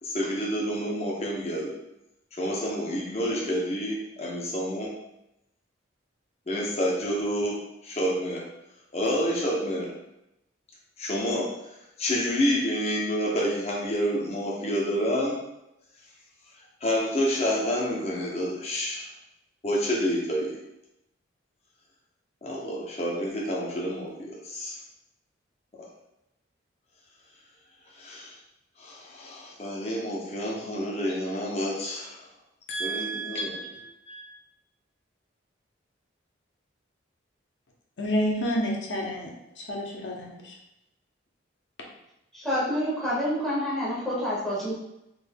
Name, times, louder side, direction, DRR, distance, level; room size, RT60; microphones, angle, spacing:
voice 1, 0.0-1.8 2.3-5.0 6.5-8.5 8.9-9.9 11.0-11.5 12.0-15.4 16.8-19.1 19.6-20.6 22.4-24.8 25.8-25.9 27.9-28.4 28.8-32.3 32.8-33.7 34.1-34.2, equal, 30° left, -3 dB, 0.7 m, -29 dB
voice 2, 32.7-33.7 38.0-40.5, equal, 70° left, 0 dB, 0.7 m, -30 dB
voice 3, 42.3-44.8, equal, ahead, -10 dB, 1.4 m, -28 dB
3.7 x 3.4 x 2.2 m, 0.85 s
head